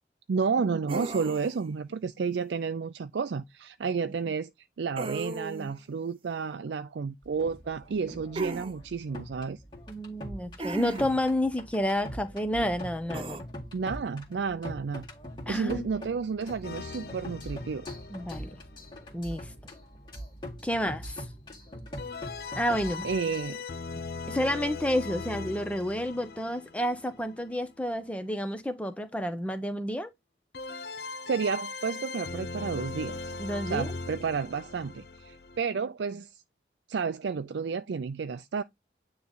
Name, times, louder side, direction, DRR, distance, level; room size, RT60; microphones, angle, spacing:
voice 1, 0.3-4.5 4.8-9.6 13.7-15.0 15.5-17.8 23.0-23.6 31.3-33.3 33.7-36.3 36.9-38.6, right 5 dB, 85° right, 0.4 m, -31 dB
sound 1, 0.9-1.7 5.0-5.8 8.4-8.7 10.6-11.3 13.1-13.4, right 2 dB, 30° right, 0.5 m, -36 dB
sound 2, 7.2-23.5, equal, 25° left, 2.1 m, -43 dB
voice 2, 9.9-13.4 15.5-15.9 18.1-18.6 19.1-19.5 20.6-21.3 22.5-23.1 24.3-30.1 33.4-33.9, equal, 5° left, 0.8 m, -30 dB
sound 3, 16.6-19.4 22.0-27.7 30.5-35.6, left 4 dB, 60° left, 0.6 m, -40 dB
9.4 x 3.1 x 3.9 m
head